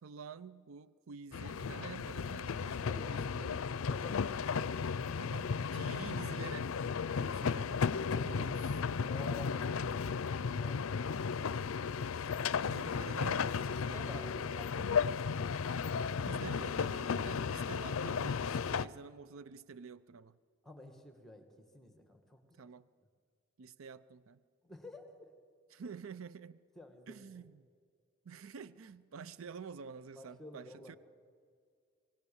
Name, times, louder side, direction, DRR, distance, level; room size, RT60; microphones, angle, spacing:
voice 1, 0.0-3.7 5.2-6.7 7.3-7.8 8.2-8.6 12.6-14.3 16.2-20.4 22.6-22.9 23.6-24.4 25.7-26.6 27.1-27.6 28.2-31.0, right 6 dB, 80° right, 17 dB, 0.5 m, -48 dB
sound 1, 1.3-18.9, left 6 dB, 90° left, 0.5 m, -34 dB
voice 2, 2.8-3.2 3.9-4.8 7.9-8.6 9.0-11.5 13.9-15.7 20.6-22.7 24.6-25.3 26.8-27.4 30.1-30.9, left 1 dB, ahead, 6 dB, 1.9 m, -52 dB
25.5 x 18.0 x 7.1 m, 2.1 s
head